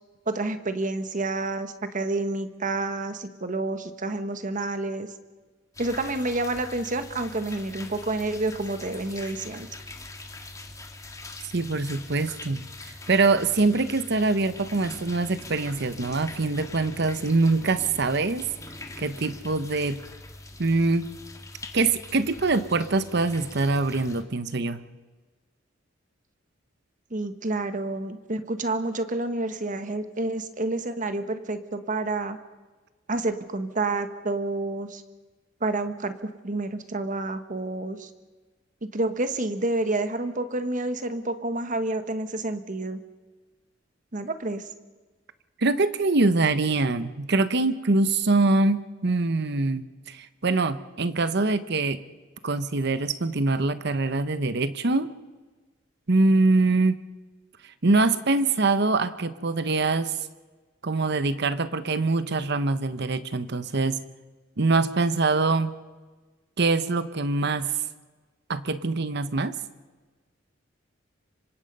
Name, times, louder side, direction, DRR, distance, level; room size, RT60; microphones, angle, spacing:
voice 1, 0.3-5.1 5.8-9.7 27.1-32.4 33.1-35.0 35.6-38.1 38.9-43.0 44.1-44.6, right 2 dB, 45° right, 9 dB, 1.4 m, -29 dB
sound 1, 5.7-24.2, left 2 dB, 15° left, 1.8 m, -43 dB
voice 2, 11.5-12.7 13.1-18.5 19.0-20.0 20.6-21.1 21.7-24.8 45.6-52.0 52.4-55.1 56.1-57.0 57.8-60.1 60.8-64.0 64.6-65.7 66.6-67.7 68.5-69.5, right 3 dB, 60° right, 13 dB, 1.0 m, -24 dB
26.0 x 24.5 x 5.4 m, 1.3 s
head